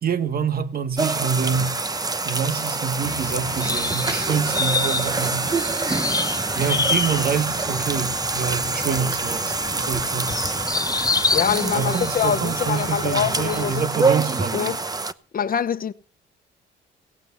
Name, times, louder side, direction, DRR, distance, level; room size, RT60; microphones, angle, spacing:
voice 1, 0.0-1.8 2.2-5.5 6.5-10.4 11.7-14.8, right 7 dB, 50° right, 1.4 m, -26 dB
sound 1, 1.0-15.1, right 3 dB, 20° right, 0.8 m, -26 dB
sound 2, 3.0-13.9, left 4 dB, 20° left, 0.6 m, -29 dB
voice 2, 11.3-13.8 14.5-14.8 15.3-15.9, left 8 dB, 45° left, 1.0 m, -24 dB
17.0 x 7.9 x 7.0 m
cardioid pair, 90°, 20 cm